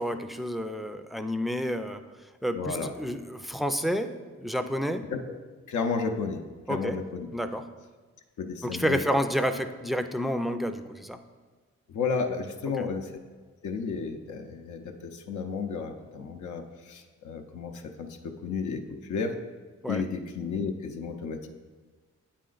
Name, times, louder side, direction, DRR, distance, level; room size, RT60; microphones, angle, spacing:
voice 1, 0.0-2.0 2.4-5.0 6.7-7.0 7.3-7.6 8.6-11.2 12.8-12.9 19.8-20.0, equal, ahead, 8 dB, 0.3 m, -30 dB
voice 2, 2.5-2.9 5.1-5.2 5.7-6.4 6.7-7.3 8.4-9.0 11.9-13.1 13.6-19.4 19.9-21.5, left 5 dB, 85° left, 4 dB, 0.6 m, -32 dB
8.4 x 4.2 x 3.9 m, 1.4 s
cardioid pair, 90°, 29 cm